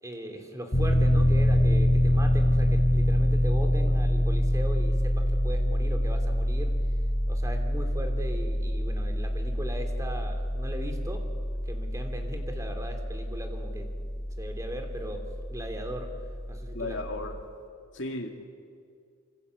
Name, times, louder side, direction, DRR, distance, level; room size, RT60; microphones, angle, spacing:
voice 1, 0.0-6.8 7.3-11.3 11.7-16.1 16.5-17.0, equal, 15° right, 5 dB, 3.0 m, -38 dB
Piano, 0.7-17.4, equal, 40° left, 3.1 m, -26 dB
voice 2, 16.7-17.4 17.9-18.3, left 2 dB, 65° left, 2 dB, 2.3 m, -34 dB
26.5 x 25.0 x 8.4 m, 2.2 s
head